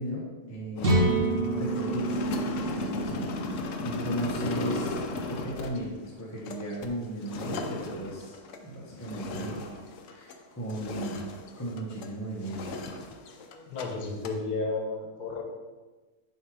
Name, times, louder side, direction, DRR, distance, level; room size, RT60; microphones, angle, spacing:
voice 1, 0.0-2.2 2.5-9.5 10.1-11.2 11.6-12.7, right 1 dB, 15° left, -6 dB, 1.0 m, -36 dB
sound 1, 0.8-10.4 10.7-12.1 12.4-13.8 14.1-14.4, left 3 dB, 65° left, 0.9 m, -36 dB
sound 2, 0.8-4.6, right 2 dB, 65° right, 1.7 m, -28 dB
voice 2, 13.7-15.4, left 3 dB, 90° left, 2 dB, 1.5 m, -32 dB
6.7 x 3.4 x 4.7 m, 1.3 s
omnidirectional pair, 1.6 m